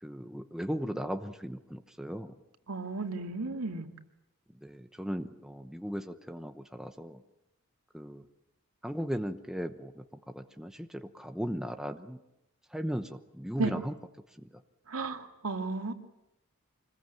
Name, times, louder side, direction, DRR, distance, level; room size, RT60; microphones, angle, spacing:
voice 1, 0.0-2.3 4.6-7.2 7.9-8.2 8.8-10.0 10.3-12.2 12.7-14.0 14.4-14.5, equal, ahead, 7 dB, 0.9 m, -37 dB
voice 2, 2.7-3.9 13.6-13.8 14.9-15.9, right 3 dB, 85° right, 5 dB, 2.3 m, -33 dB
25.5 x 21.0 x 9.2 m, 0.89 s
head